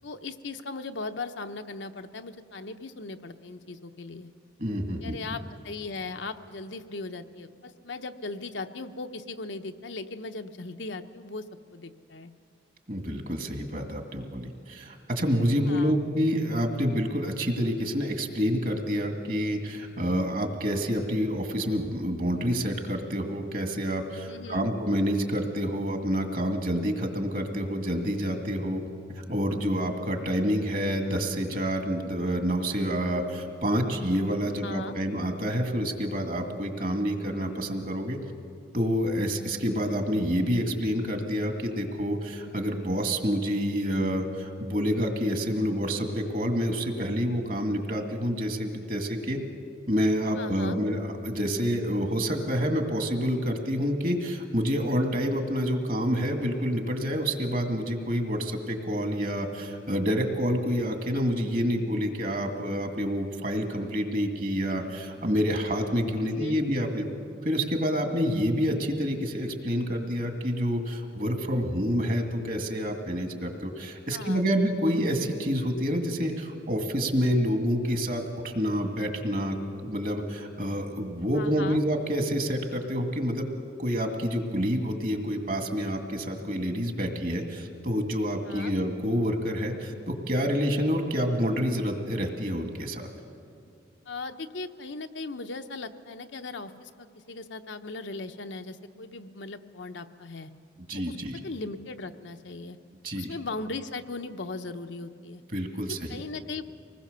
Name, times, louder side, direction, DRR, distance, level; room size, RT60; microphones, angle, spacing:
voice 1, 0.0-4.3 5.0-11.4 11.7-12.3 15.6-16.0 24.3-24.7 34.6-35.0 50.3-50.8 66.2-66.6 74.1-74.4 81.3-81.8 88.4-88.7 94.1-100.5 100.9-101.2 101.4-102.8 103.1-105.4 105.9-106.6, left 3 dB, 75° left, 7 dB, 0.8 m, -38 dB
voice 2, 4.6-5.2 12.9-28.8 29.3-38.2 38.7-49.4 49.9-67.0 67.4-79.6 79.8-83.5 83.8-93.0 100.9-101.4 103.0-103.3 105.5-106.2, equal, 45° right, 4 dB, 2.1 m, -28 dB
25.5 x 20.0 x 6.8 m, 2.4 s
head